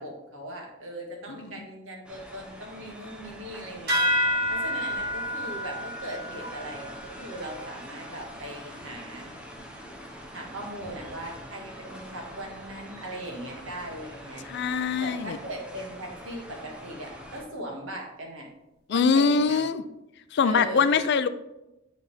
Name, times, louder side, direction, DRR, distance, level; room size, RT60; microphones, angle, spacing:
voice 1, 0.0-9.3 10.3-18.5 18.9-19.6 20.4-20.9, right 1 dB, 75° right, 0 dB, 1.7 m, -39 dB
sound 1, 2.0-17.4, equal, 5° right, 0.8 m, -44 dB
sound 2, 3.9-8.8, equal, 50° right, 2.3 m, -30 dB
voice 2, 14.5-15.4 18.9-19.8 20.3-21.3, left 5 dB, 55° left, 13 dB, 0.4 m, -23 dB
9.3 x 4.0 x 3.4 m, 0.93 s
head